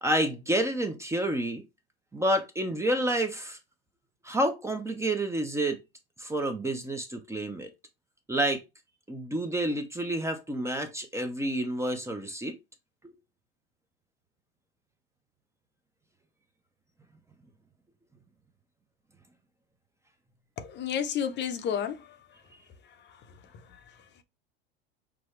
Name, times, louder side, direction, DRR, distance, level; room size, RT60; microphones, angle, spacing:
voice 1, 0.0-1.6 2.1-3.6 4.2-5.8 6.2-7.7 8.3-8.6 9.1-12.5 13.0-13.1, right 1 dB, 10° right, 0.7 m, -29 dB
voice 2, 20.6-22.2, left 8 dB, 35° left, 0.8 m, -31 dB
6.1 x 2.3 x 3.2 m
hypercardioid pair, 105°, 30 cm